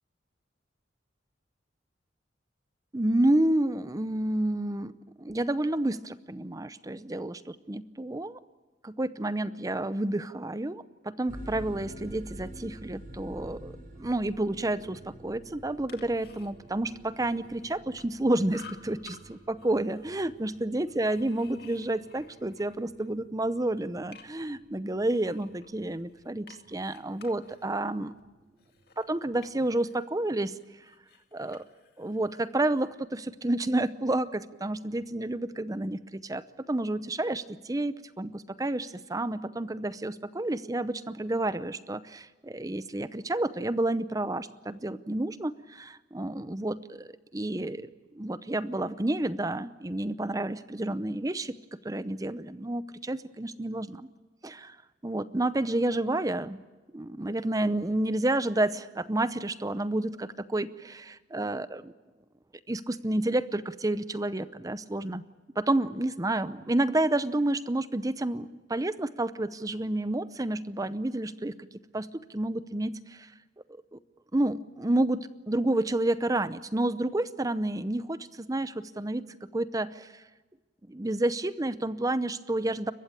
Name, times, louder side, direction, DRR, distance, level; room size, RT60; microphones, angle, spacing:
voice 1, 2.9-8.4 8.8-13.7 14.0-28.1 29.0-30.5 31.3-31.6 32.0-47.9 48.1-51.5 51.8-54.1 54.4-54.8 55.0-56.6 56.9-61.9 62.7-65.2 65.6-71.6 71.9-73.3 73.9-74.0 74.3-80.2 80.9-82.9, right 1 dB, 20° right, 15 dB, 0.7 m, -30 dB
sound 1, 11.3-29.9, equal, 50° right, 5.4 m, -49 dB
sound 2, 15.7-18.2 18.5-19.2 19.6-23.1 23.5-24.6 25.0-30.0 30.3-32.9, left 6 dB, 55° left, 2.3 m, -55 dB
29.5 x 15.0 x 8.9 m, 1.2 s
head